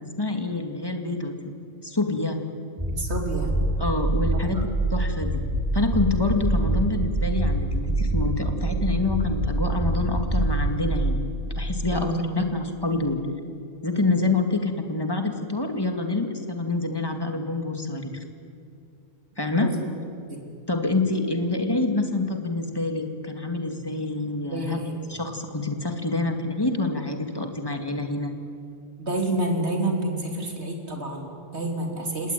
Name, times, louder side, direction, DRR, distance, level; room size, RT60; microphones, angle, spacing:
voice 1, 0.0-1.3 1.8-2.4 3.8-5.4 5.7-11.2 11.5-13.2 13.8-18.2 19.4-19.7 20.7-24.8 25.1-28.3, left 3 dB, 15° left, 5 dB, 2.3 m, -27 dB
sound 1, 2.8-11.9, right 2 dB, 5° right, 7.8 m, -25 dB
voice 2, 3.0-3.5 4.3-4.6 11.9-12.4 19.6-19.8 20.3-20.4 24.5-24.9 29.0-32.3, right 1 dB, 55° right, 2 dB, 3.8 m, -29 dB
30.0 x 18.5 x 9.3 m, 2.4 s
omnidirectional pair, 1.4 m